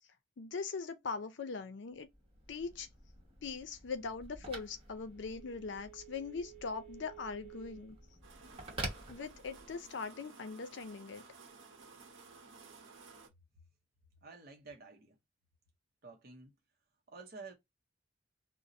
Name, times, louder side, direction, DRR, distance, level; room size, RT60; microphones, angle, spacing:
voice 1, 0.4-2.1 2.5-2.9 3.4-8.0 9.1-11.2, left 4 dB, 70° left, 0.5 m, -41 dB
Telephone, 2.0-9.9, right 2 dB, 30° right, 1.0 m, -48 dB
sound 1, 8.2-13.3, right 4 dB, 90° right, 0.8 m, -56 dB
voice 2, 14.2-15.2 16.0-16.5 17.1-17.5, right 4 dB, 55° right, 0.6 m, -50 dB
2.5 x 2.0 x 3.9 m
head